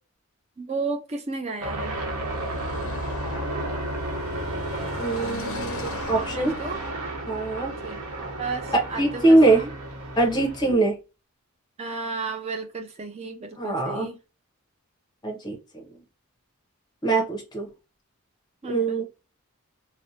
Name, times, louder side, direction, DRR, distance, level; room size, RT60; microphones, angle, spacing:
voice 1, 0.6-2.0 6.1-6.8 7.8-8.0 8.4-9.7 11.8-14.2 18.6-19.0, right 4 dB, 30° right, 0.4 m, -33 dB
sound 1, 1.6-10.7, right 2 dB, 85° right, 0.9 m, -33 dB
Car passing by / Traffic noise roadway noise, 1.8-6.9, left 3 dB, 60° left, 0.4 m, -38 dB
voice 2, 5.0-6.5 7.3-7.7 9.0-9.6 10.2-10.9 13.6-14.1 15.2-15.8 17.0-17.7 18.7-19.0, right 2 dB, 20° left, 0.6 m, -22 dB
2.6 x 2.1 x 2.7 m
head